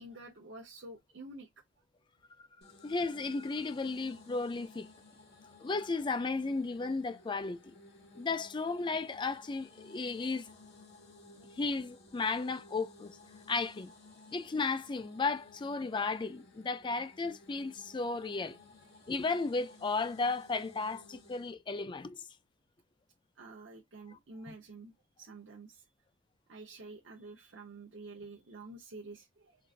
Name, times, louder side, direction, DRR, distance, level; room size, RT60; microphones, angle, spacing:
voice 1, 0.0-1.5 23.4-25.8 26.5-29.6, right 2 dB, 65° right, 0.8 m, -49 dB
sound 1, 2.6-21.5, left 2 dB, 55° left, 1.4 m, -56 dB
voice 2, 2.8-4.9 5.6-7.8 8.2-10.5 11.6-13.1 13.5-13.9 14.3-18.6 19.1-22.2 24.1-24.2 24.5-24.6, left 3 dB, 25° left, 0.4 m, -34 dB
4.6 x 2.5 x 2.4 m
head